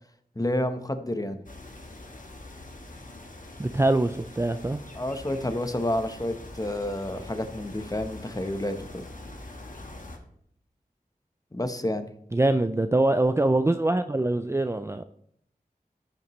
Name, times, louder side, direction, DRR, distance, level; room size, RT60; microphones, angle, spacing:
voice 1, 0.4-1.4 5.0-9.0 11.5-12.1, left 1 dB, 25° left, 0.9 m, -29 dB
sound 1, 1.5-10.2, left 2 dB, 60° left, 1.4 m, -44 dB
voice 2, 3.6-4.8 12.3-15.0, right 2 dB, 15° right, 0.4 m, -24 dB
14.0 x 5.8 x 3.1 m
wide cardioid pair, 45°, 16 cm